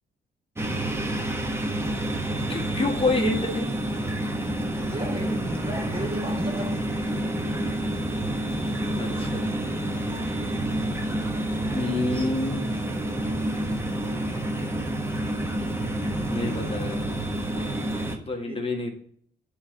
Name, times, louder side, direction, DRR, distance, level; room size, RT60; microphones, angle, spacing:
sound 1, 0.6-18.2, right 1 dB, 15° right, 1.0 m, -28 dB
voice 1, 2.5-3.8 8.6-9.4 11.7-12.7 16.3-17.8 18.1-18.9, left 2 dB, 30° left, 1.6 m, -29 dB
voice 2, 4.6-6.9 12.9-13.1 17.2-17.3 18.4-18.7, right 1 dB, 30° right, 1.4 m, -34 dB
9.7 x 3.2 x 3.8 m
cardioid pair, 90°, 19 cm